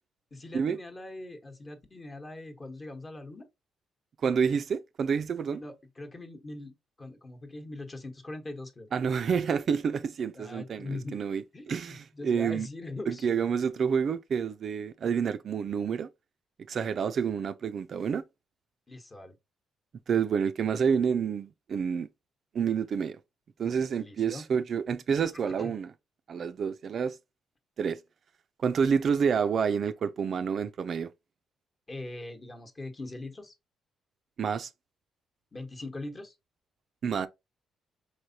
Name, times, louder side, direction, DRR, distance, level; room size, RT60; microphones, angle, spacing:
voice 1, 0.3-3.5 5.5-8.9 10.3-11.2 11.5-13.3 18.9-19.4 24.0-24.5 25.5-25.7 31.9-33.5 35.5-36.3, left 2 dB, 30° left, 1.0 m, -41 dB
voice 2, 4.2-5.6 8.9-12.7 13.1-16.1 16.7-18.2 20.1-22.1 22.5-23.2 23.6-25.9 26.3-27.2 27.8-28.0 28.6-31.1 34.4-34.7 37.0-37.3, right 6 dB, 55° right, 0.3 m, -28 dB
4.2 x 3.2 x 2.7 m
cardioid pair, 90°, 0 cm